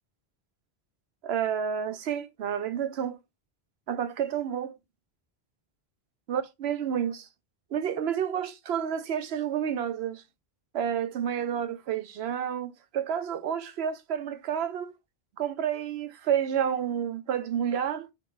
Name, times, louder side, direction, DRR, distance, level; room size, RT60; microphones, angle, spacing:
voice 1, 1.2-3.2 3.9-4.7 6.3-7.3 7.7-10.2 10.7-14.9 15.4-18.1, right 8 dB, 80° right, 0.9 m, -30 dB
3.9 x 3.0 x 4.3 m
omnidirectional pair, 1.1 m